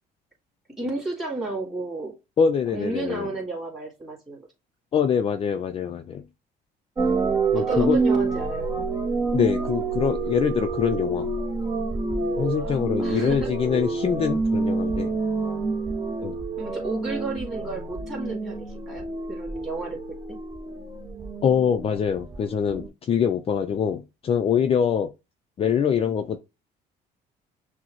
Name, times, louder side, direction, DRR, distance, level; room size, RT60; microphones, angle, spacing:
voice 1, 0.8-2.2 2.7-4.5 7.5-8.7 12.6-13.5 16.6-20.0, right 3 dB, ahead, 2.1 m, -32 dB
voice 2, 2.4-3.3 4.9-6.2 7.5-8.0 9.3-11.3 12.4-15.1 16.2-16.4 21.4-25.1 25.6-26.4, left 7 dB, 35° left, 0.4 m, -24 dB
sound 1, 7.0-22.9, right 3 dB, 20° right, 0.7 m, -28 dB
6.1 x 2.1 x 3.0 m
cardioid pair, 110°, 17 cm